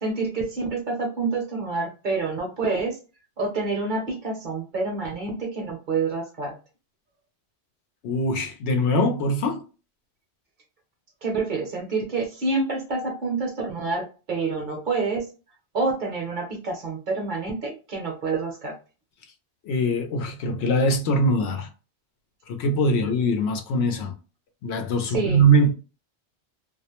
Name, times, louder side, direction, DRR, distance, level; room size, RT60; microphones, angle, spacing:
voice 1, 0.0-3.0 3.4-6.5 11.2-15.3 15.7-18.8 25.1-25.4, right 3 dB, 50° right, 0.8 m, -27 dB
voice 2, 8.0-9.6 19.7-21.7 22.5-24.1 24.6-25.7, right 1 dB, 80° left, 0.9 m, -22 dB
2.4 x 2.0 x 2.9 m
omnidirectional pair, 1.1 m